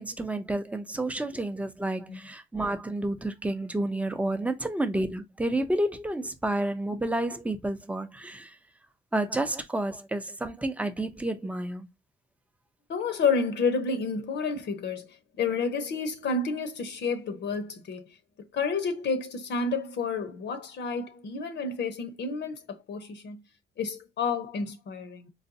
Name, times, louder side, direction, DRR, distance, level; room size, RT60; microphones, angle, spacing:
voice 1, 0.0-8.5 9.1-11.9, right 1 dB, 5° right, 0.5 m, -30 dB
voice 2, 12.9-15.1 15.4-18.0 18.5-23.4 23.8-25.3, left 4 dB, 60° left, 0.8 m, -30 dB
4.0 x 2.2 x 2.7 m
cardioid pair, 90°, 20 cm